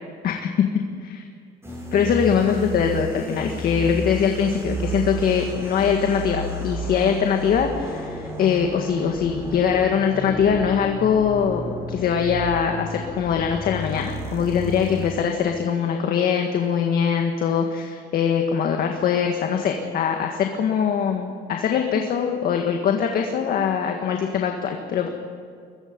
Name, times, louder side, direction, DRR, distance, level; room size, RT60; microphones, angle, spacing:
sound 1, 1.6-15.3, right 1 dB, 15° right, 7.1 m, -32 dB
voice 1, 1.9-25.1, left 7 dB, 60° left, 3 dB, 1.8 m, -22 dB
22.5 x 22.0 x 5.4 m, 2.2 s
cardioid pair, 110°, 17 cm